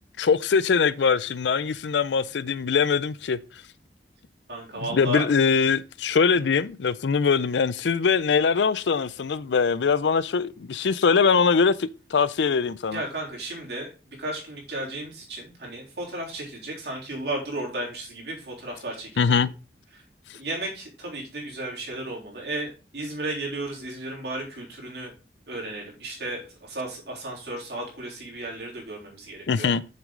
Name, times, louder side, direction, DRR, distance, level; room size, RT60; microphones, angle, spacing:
voice 1, 0.2-3.4 4.8-13.0 19.2-19.5 29.5-29.8, left 5 dB, 85° left, 0.5 m, -22 dB
voice 2, 4.5-5.3 6.3-6.4 12.9-13.9 14.2-19.4 20.3-25.1 25.5-29.7, right 1 dB, 70° right, 3.5 m, -34 dB
7.4 x 6.1 x 3.8 m
head